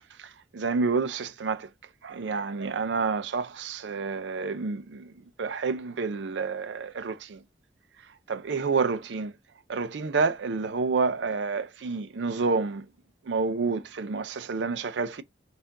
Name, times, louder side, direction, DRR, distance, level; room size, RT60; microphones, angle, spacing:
voice 1, 0.5-1.7 2.0-5.1 5.4-7.4 8.3-9.3 9.7-12.8 13.3-15.2, right 4 dB, 90° right, 0.5 m, -29 dB
5.7 x 2.5 x 2.5 m
head